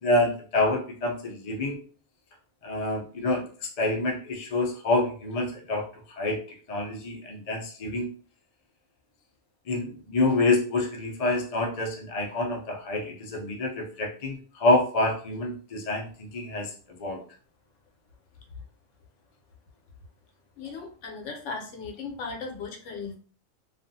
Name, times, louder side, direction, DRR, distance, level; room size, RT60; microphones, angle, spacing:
voice 1, 0.0-1.8 2.6-6.4 6.7-8.1 9.7-16.7 17.0-17.2, left 2 dB, 45° left, 1 dB, 0.5 m, -27 dB
voice 2, 20.6-23.2, left 4 dB, 75° left, 2 dB, 1.0 m, -37 dB
2.4 x 2.4 x 2.6 m, 0.40 s
omnidirectional pair, 1.3 m